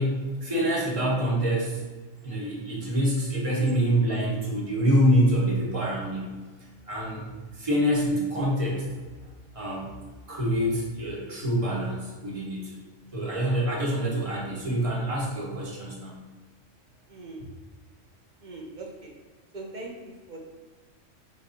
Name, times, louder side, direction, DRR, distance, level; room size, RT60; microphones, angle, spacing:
voice 1, 0.0-1.8 2.2-6.3 6.9-7.2 7.5-8.8 9.5-9.9 10.3-12.8 13.1-16.1, equal, 30° right, -5 dB, 1.0 m, -26 dB
voice 2, 17.1-17.4 18.4-19.1 19.5-20.4, right 2 dB, 45° right, 0 dB, 0.7 m, -41 dB
5.3 x 3.1 x 2.6 m, 1.3 s
omnidirectional pair, 1.3 m